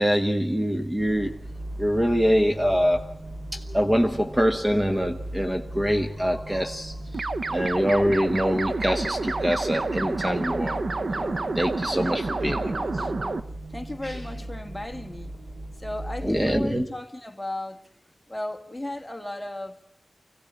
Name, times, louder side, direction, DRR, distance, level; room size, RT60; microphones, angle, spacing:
voice 1, 0.0-1.3 1.8-3.1 3.5-6.9 7.5-10.8 11.1-12.7 14.0-14.2 16.2-16.9, equal, 15° right, 1.2 m, -24 dB
sound 1, 1.0-16.7, right 1 dB, 80° right, 3.4 m, -38 dB
sound 2, 7.1-13.4, right 3 dB, 50° right, 0.8 m, -29 dB
voice 2, 12.0-13.1 13.7-15.3 15.8-17.8 18.3-19.8, left 1 dB, 10° left, 1.7 m, -35 dB
25.5 x 16.5 x 8.3 m
wide cardioid pair, 105°, 0 cm